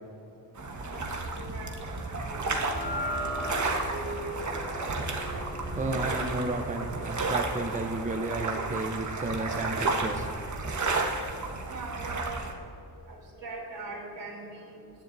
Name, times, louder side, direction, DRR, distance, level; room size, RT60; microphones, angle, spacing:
sound 1, 0.6-12.5, right 3 dB, 40° right, 1.3 m, -32 dB
voice 1, 0.9-2.4 2.7-4.6 11.7-12.4 13.1-14.8, right 3 dB, 70° right, -3 dB, 3.4 m, -42 dB
sound 2, 2.5-8.9, equal, 25° left, 2.5 m, -39 dB
voice 2, 5.8-10.3, right 2 dB, 15° right, 5 dB, 0.8 m, -32 dB
22.5 x 10.0 x 2.7 m, 2.6 s
cardioid pair, 90°, 44 cm